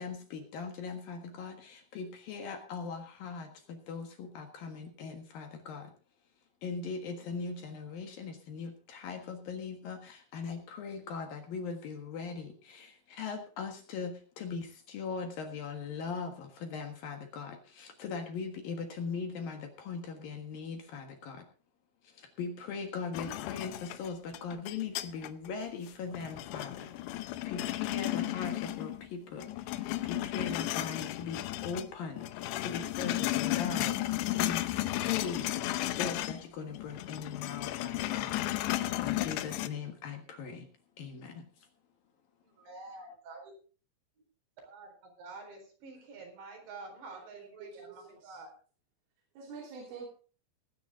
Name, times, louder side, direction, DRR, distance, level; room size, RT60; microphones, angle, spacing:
voice 1, 0.0-5.9 6.6-21.5 22.0-38.4 38.7-40.7 41.0-41.4, left 5 dB, 60° left, 5 dB, 2.7 m, -40 dB
sound 1, 23.1-25.5 25.9-29.1 29.4-31.9 32.2-36.5 36.7-39.7, left 15 dB, 80° left, 2.7 m, -34 dB
voice 2, 42.4-43.5 44.6-48.5, right 3 dB, 65° right, 3 dB, 6.3 m, -48 dB
voice 3, 47.1-48.0 48.2-48.4 49.4-50.1, right 5 dB, 80° right, -2 dB, 5.7 m, -46 dB
20.0 x 9.5 x 3.7 m, 0.39 s
omnidirectional pair, 5.7 m